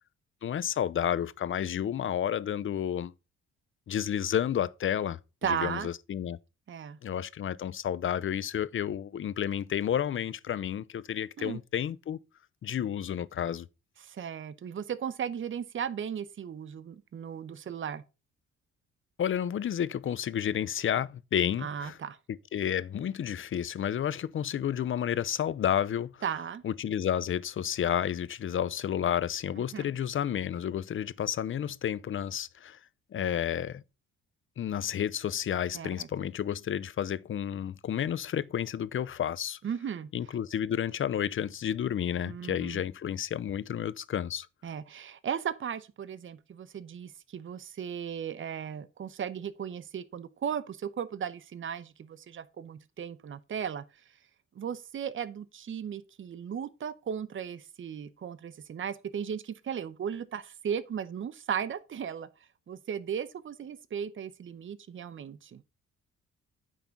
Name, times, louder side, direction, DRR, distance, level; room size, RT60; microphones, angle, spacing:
voice 1, 0.4-3.1 3.9-5.2 5.5-6.4 7.0-12.2 12.6-13.7 19.2-22.0 22.3-26.2 26.6-32.8 33.1-33.8 34.6-39.6 40.1-44.5, left 9 dB, 40° left, 0.6 m, -31 dB
voice 2, 5.4-5.9 6.7-7.0 11.4-11.6 14.0-18.0 21.6-22.2 26.2-26.6 29.6-29.8 35.7-36.1 39.6-40.1 42.2-42.8 44.6-53.8 54.5-62.3 62.7-65.6, right 8 dB, 40° right, 0.8 m, -36 dB
9.1 x 3.7 x 5.9 m
cardioid pair, 90°, 30 cm